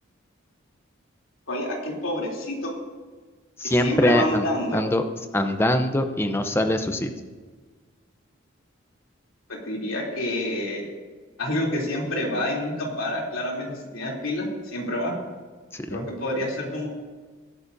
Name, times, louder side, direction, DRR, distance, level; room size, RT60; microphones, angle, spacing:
voice 1, 1.5-2.7 3.6-4.8 9.5-10.8 11.4-15.1 15.9-16.9, left 1 dB, 80° left, -2 dB, 3.3 m, -28 dB
voice 2, 3.6-4.5 4.7-5.0 5.3-7.1 15.7-16.1, left 1 dB, 10° left, 7 dB, 0.7 m, -23 dB
20.0 x 11.0 x 2.7 m, 1.4 s
head